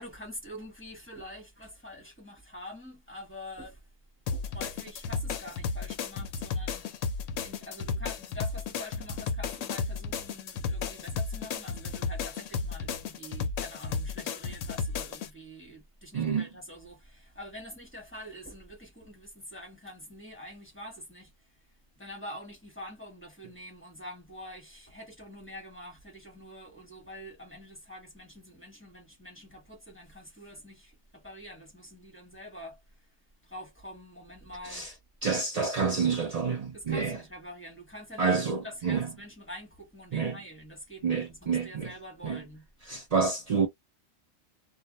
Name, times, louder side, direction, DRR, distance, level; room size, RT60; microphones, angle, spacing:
voice 1, 0.0-3.8 4.3-6.9 7.4-21.3 22.0-32.8 33.4-34.9 35.8-36.0 36.7-42.7, equal, 10° left, 1.1 m, -46 dB
sound 1, 4.3-15.3, left 5 dB, 70° left, 0.9 m, -34 dB
voice 2, 16.1-16.5 34.6-34.9 35.2-37.2 38.2-39.1 40.1-40.4 41.0-41.9 42.2-42.4 42.9-43.7, right 5 dB, 70° right, 0.3 m, -28 dB
2.4 x 2.1 x 2.9 m
omnidirectional pair, 1.4 m